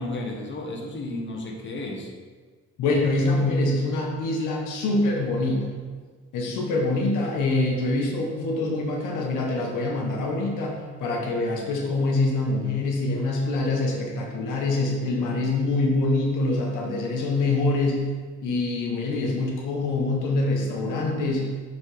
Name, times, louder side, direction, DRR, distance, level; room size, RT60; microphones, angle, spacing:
voice 1, 0.0-2.1, left 2 dB, 40° left, 0 dB, 1.2 m, -33 dB
voice 2, 2.8-5.6 6.3-18.0 18.4-21.4, left 2 dB, 90° left, 0 dB, 1.0 m, -25 dB
7.3 x 4.0 x 3.3 m, 1.5 s
cardioid pair, 90°, 30 cm